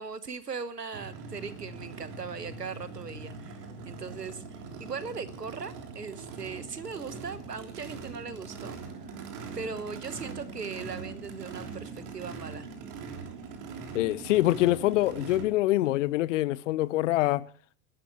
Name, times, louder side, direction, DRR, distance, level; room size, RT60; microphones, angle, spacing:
voice 1, 0.0-9.2 9.5-12.7, right 5 dB, 85° right, 1.3 m, -39 dB
Race car auto racing / Idling / Accelerating revving vroom, 0.9-15.4, right 4 dB, 40° right, 3.5 m, -42 dB
voice 2, 13.9-17.5, left 16 dB, 50° left, 0.9 m, -25 dB
29.0 x 12.5 x 3.1 m
figure-of-eight pair, 90°, 47 cm